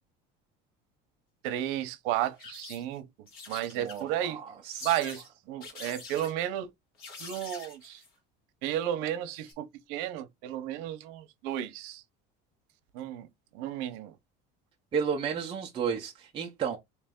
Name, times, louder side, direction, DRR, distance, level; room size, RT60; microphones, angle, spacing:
voice 1, 1.4-3.1 3.5-4.4 4.8-6.7 7.2-8.0 8.6-12.0 12.9-13.3 13.5-14.1, right 12 dB, 80° right, 0.8 m, -33 dB
sound 1, 2.2-3.0 3.3-4.2 4.8-5.3 5.6-6.3 7.0-8.1 9.3-9.5, left 4 dB, 50° left, 1.7 m, -45 dB
voice 2, 3.8-4.9 14.9-16.8, right 7 dB, 25° right, 0.6 m, -32 dB
3.3 x 3.0 x 3.6 m
cardioid pair, 160°, 20 cm